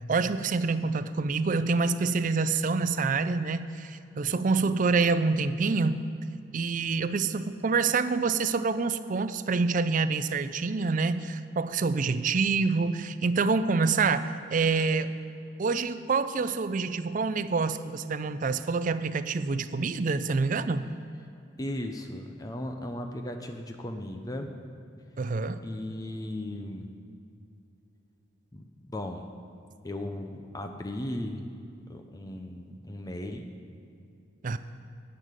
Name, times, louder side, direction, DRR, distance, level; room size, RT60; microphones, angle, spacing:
voice 1, 0.1-6.0 6.5-15.1 15.6-20.9 25.2-25.6 34.4-34.6, right 4 dB, 40° right, 13 dB, 0.4 m, -27 dB
voice 2, 21.6-24.5 25.6-26.9 28.5-29.2 29.8-31.5 31.9-33.5 34.5-34.6, left 1 dB, 20° left, 5 dB, 0.6 m, -36 dB
10.0 x 6.8 x 8.9 m, 2.6 s
head